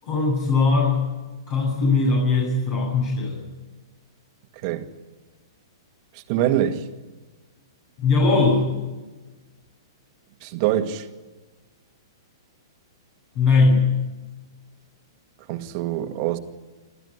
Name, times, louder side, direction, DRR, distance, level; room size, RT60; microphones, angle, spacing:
voice 1, 0.0-1.1 1.5-3.4 8.0-8.7 13.4-13.9, left 3 dB, 45° left, 7.1 m, -20 dB
voice 2, 6.3-6.8 10.4-11.1 15.5-16.4, right 12 dB, 45° right, 1.9 m, -24 dB
27.5 x 13.0 x 9.7 m
hypercardioid pair, 130°, 2 cm